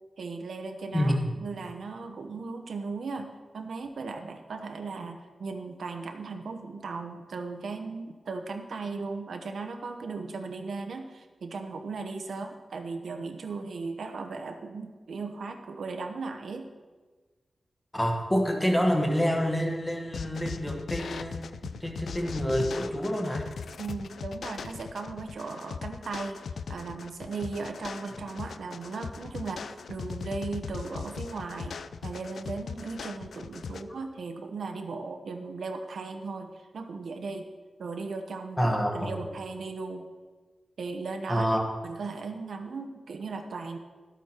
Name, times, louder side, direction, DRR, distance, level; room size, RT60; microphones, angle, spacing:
voice 1, 0.2-16.7 21.6-21.7 23.8-26.4 26.7-31.8 32.0-37.5 37.8-40.1 40.8-41.5 41.8-43.8, right 4 dB, 75° right, 5 dB, 0.9 m, -37 dB
voice 2, 0.9-1.3 17.9-21.4 21.8-23.5 33.7-33.8 38.6-39.2 41.3-41.7, equal, 10° left, 1 dB, 1.3 m, -27 dB
sound 1, 20.1-33.8, left 6 dB, 85° left, 0.4 m, -39 dB
12.5 x 8.3 x 4.4 m, 1.3 s
wide cardioid pair, 180°, 0 cm